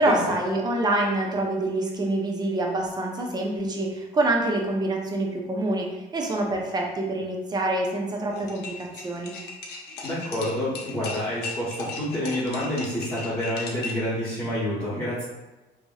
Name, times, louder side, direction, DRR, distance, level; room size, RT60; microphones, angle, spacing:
voice 1, 0.0-5.9 6.1-9.3, right 2 dB, 25° right, 0 dB, 0.5 m, -26 dB
sound 1, 8.3-14.1, left 4 dB, 75° left, 0.6 m, -37 dB
voice 2, 10.0-15.2, left 1 dB, 20° left, -12 dB, 1.0 m, -28 dB
2.9 x 2.7 x 2.3 m, 1.1 s
cardioid pair, 110°, 17 cm